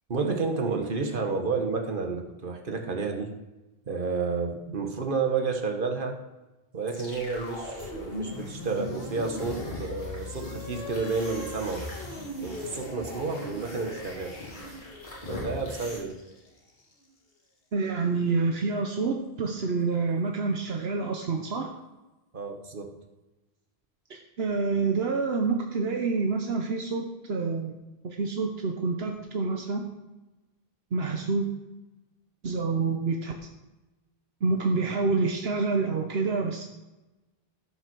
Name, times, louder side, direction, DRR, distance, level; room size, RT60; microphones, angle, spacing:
voice 1, 0.1-3.3 3.9-6.2 6.7-11.9 12.4-14.4 15.3-16.2 22.3-22.9, right 4 dB, 60° right, 3 dB, 1.5 m, -30 dB
sound 1, 6.9-17.1, left 2 dB, 65° left, 2.0 m, -40 dB
sound 2, 7.1-16.0, left 1 dB, 50° left, 3.5 m, -43 dB
voice 2, 17.7-21.7 24.1-27.7 28.0-29.8 30.9-31.5 32.4-33.3 34.4-36.6, right 4 dB, 80° right, 3 dB, 1.2 m, -27 dB
12.5 x 5.8 x 6.1 m, 1.1 s
omnidirectional pair, 1.0 m